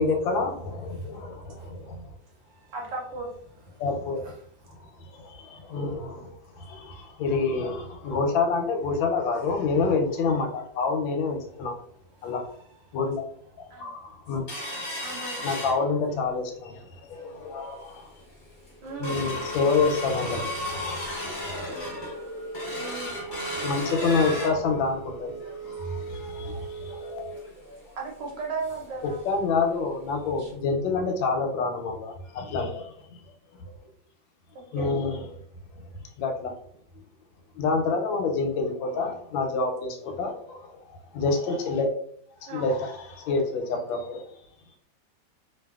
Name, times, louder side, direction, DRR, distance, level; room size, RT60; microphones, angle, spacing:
voice 1, 0.0-2.1 3.8-4.3 5.0-11.7 12.2-12.4 12.9-13.2 13.6-14.4 15.4-18.2 19.0-22.1 23.2-27.3 29.0-33.2 33.6-33.9 34.7-35.4 35.7-35.9 36.2-36.5 37.0-37.1 37.5-41.9 42.4-44.3, left 4 dB, 85° left, 1.4 m, -28 dB
voice 2, 0.8-3.0 3.5-7.2 8.0-8.2 11.4-13.0 13.4-14.6 17.9-19.2, equal, 90° right, 1.5 m, -58 dB
voice 3, 2.7-3.3 13.7-13.9 15.0-15.4 18.8-19.4 22.7-23.1 27.9-29.2 30.4-30.5 34.5-35.0 42.5-42.7, right 3 dB, 70° right, 1.4 m, -36 dB
sound 1, 14.5-16.3 16.8-16.9 17.2-17.5 18.0-18.1 18.5-29.0 29.3-29.4 29.8-30.0 30.5-30.6, equal, 40° left, 0.7 m, -35 dB
3.2 x 2.3 x 2.3 m
omnidirectional pair, 2.1 m